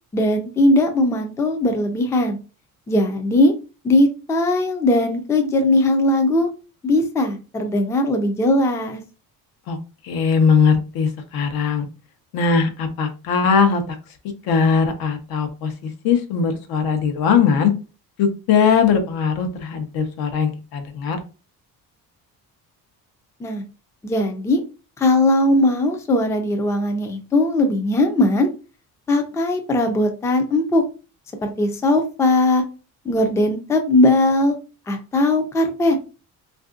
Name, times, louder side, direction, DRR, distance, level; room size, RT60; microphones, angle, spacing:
voice 1, 0.1-2.4 2.9-3.5 3.8-6.5 6.8-9.0 23.4-23.6 24.0-24.6 25.0-28.5 29.1-30.8 31.4-32.6 33.1-34.5 34.9-36.0, left 1 dB, 10° left, 4 dB, 0.3 m, -19 dB
voice 2, 10.0-11.9 12.3-14.0 14.4-17.7 18.2-21.2, left 6 dB, 80° left, 7 dB, 0.8 m, -20 dB
3.4 x 2.6 x 2.4 m, 0.32 s
cardioid pair, 155°, 36 cm